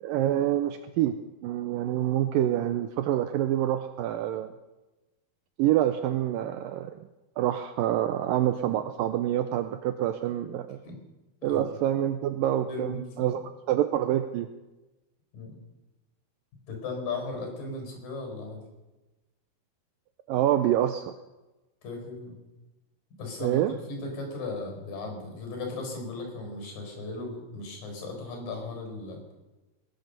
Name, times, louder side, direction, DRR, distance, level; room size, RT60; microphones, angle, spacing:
voice 1, 0.0-1.2 1.4-4.5 5.6-7.0 7.4-10.8 11.4-13.4 13.7-14.5 20.3-21.1 23.4-23.7, right 12 dB, 90° right, 10 dB, 1.9 m, -26 dB
voice 2, 12.7-13.3 15.3-15.6 16.7-18.6 21.8-22.4 23.2-29.2, left 3 dB, 55° left, 2 dB, 6.2 m, -37 dB
20.5 x 9.4 x 6.7 m, 1.1 s
omnidirectional pair, 4.7 m